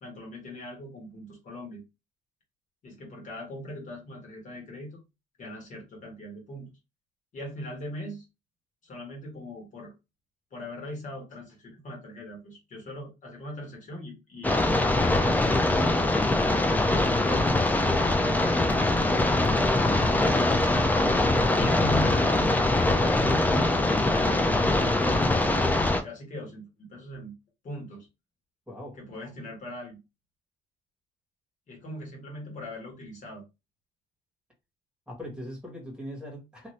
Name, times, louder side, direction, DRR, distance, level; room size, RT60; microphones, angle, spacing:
voice 1, 0.0-1.8 2.8-5.0 5.4-6.7 7.3-8.3 8.8-9.9 10.5-16.2 16.9-20.4 21.5-25.7 26.0-27.4 27.6-28.1 28.9-30.0 31.7-33.4, left 1 dB, 50° left, 1.4 m, -40 dB
sound 1, 14.4-26.0, left 2 dB, 10° left, 0.4 m, -23 dB
voice 2, 28.7-29.0 35.1-36.7, equal, 5° right, 1.5 m, -40 dB
2.7 x 2.6 x 3.1 m
cardioid pair, 110°, 17 cm